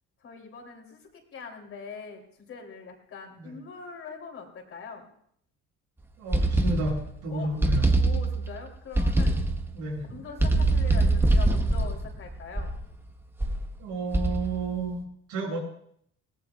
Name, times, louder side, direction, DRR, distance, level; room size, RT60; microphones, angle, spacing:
voice 1, 0.2-1.0 1.3-5.1 7.3-7.5 8.0-9.4 10.1-12.8, left 5 dB, 45° left, 1 dB, 3.2 m, -42 dB
voice 2, 6.2-7.9 9.7-10.2 13.8-15.6, right 2 dB, 85° right, -2 dB, 7.7 m, -32 dB
sound 1, 6.3-7.2 7.6-8.6 8.9-9.7 10.4-12.9 13.4-13.7 14.1-14.7, right 2 dB, 10° right, 0.8 m, -24 dB
22.0 x 18.0 x 2.4 m, 0.68 s
cardioid pair, 150°, 29 cm